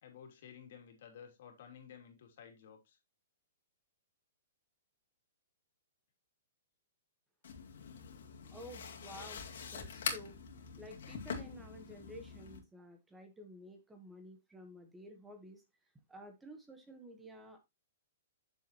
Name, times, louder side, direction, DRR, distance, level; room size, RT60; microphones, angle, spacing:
voice 1, 0.0-3.0, left 8 dB, 55° left, 2.8 m, -54 dB
sound 1, 7.4-12.6, left 6 dB, 75° left, 2.3 m, -44 dB
voice 2, 8.5-9.4 9.7-10.4 10.8-17.6, equal, 5° right, 1.1 m, -52 dB
8.5 x 6.9 x 3.0 m
hypercardioid pair, 160°, 0 cm